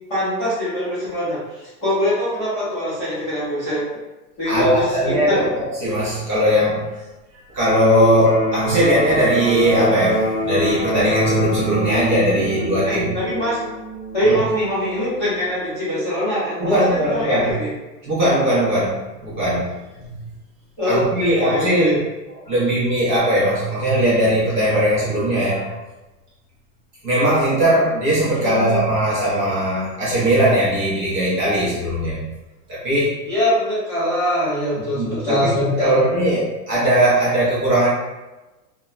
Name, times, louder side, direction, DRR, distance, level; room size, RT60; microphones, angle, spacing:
voice 1, 0.1-4.0 4.4-5.5 12.8-13.7 14.1-17.7 20.8-22.0 28.3-28.8 33.3-36.0, equal, 15° left, -14 dB, 0.5 m, -23 dB
voice 2, 4.5-6.8 7.5-13.1 14.2-14.4 16.6-17.5 18.1-19.7 20.0-20.2 20.8-22.0 22.5-25.8 27.0-32.2 32.7-33.2 34.9-37.9, right 1 dB, 30° right, -8 dB, 0.6 m, -19 dB
Electric guitar, 7.7-15.6, left 1 dB, 70° left, 0.6 m, -26 dB
2.7 x 2.1 x 2.3 m, 1.1 s
supercardioid pair, 160°, 48 cm